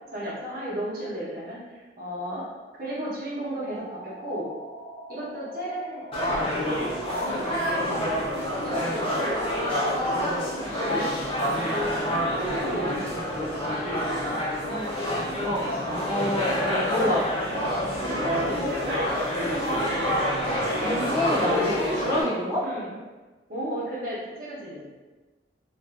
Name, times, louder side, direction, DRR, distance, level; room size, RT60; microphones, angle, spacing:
voice 1, 0.1-2.5 2.8-4.5 5.1-6.1 7.1-7.5 8.6-9.4 12.0-13.7 16.9-17.2 18.1-19.2 19.5-20.2 22.6-23.0 23.5-24.9, right 1 dB, 55° right, -7 dB, 0.9 m, -33 dB
sound 1, 3.4-22.7, right 1 dB, 85° right, 0.7 m, -42 dB
sound 2, 6.1-22.2, equal, 30° left, 0.7 m, -27 dB
voice 2, 16.0-17.2 20.8-22.6, left 1 dB, 15° right, -9 dB, 0.5 m, -28 dB
2.6 x 2.4 x 2.4 m, 1.3 s
head